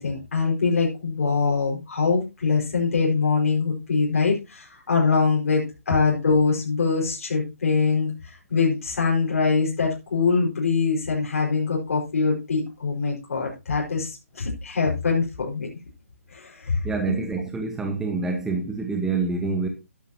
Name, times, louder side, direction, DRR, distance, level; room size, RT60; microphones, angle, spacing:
voice 1, 0.0-15.7 16.3-17.1, left 4 dB, 65° left, 5.0 m, -23 dB
voice 2, 16.8-19.7, right 4 dB, 5° right, 1.2 m, -26 dB
12.5 x 11.5 x 2.9 m
hypercardioid pair, 150°, 8 cm